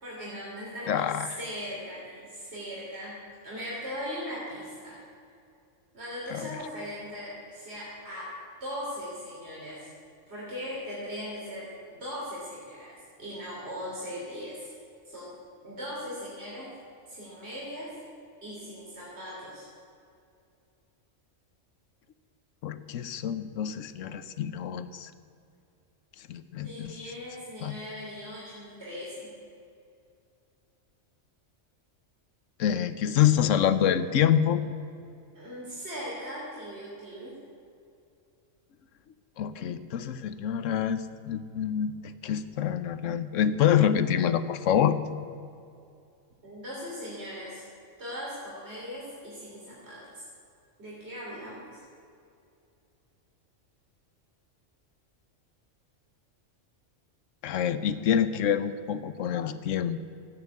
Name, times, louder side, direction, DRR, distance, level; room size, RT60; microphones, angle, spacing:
voice 1, 0.0-3.1 3.4-5.0 5.9-8.3 8.6-9.9 10.3-14.7 15.1-15.3 15.6-16.7 17.1-17.9 18.4-19.6 26.6-29.3 35.3-37.3 46.4-47.6 48.0-50.2 50.8-51.8, equal, 60° right, -6 dB, 3.6 m, -39 dB
voice 2, 0.9-1.4 6.3-6.5 22.6-25.1 26.3-27.0 27.6-27.7 32.6-34.6 39.4-45.0 57.4-60.1, left 9 dB, 80° left, 13 dB, 1.1 m, -26 dB
14.5 x 9.1 x 8.4 m, 2.5 s
omnidirectional pair, 1.3 m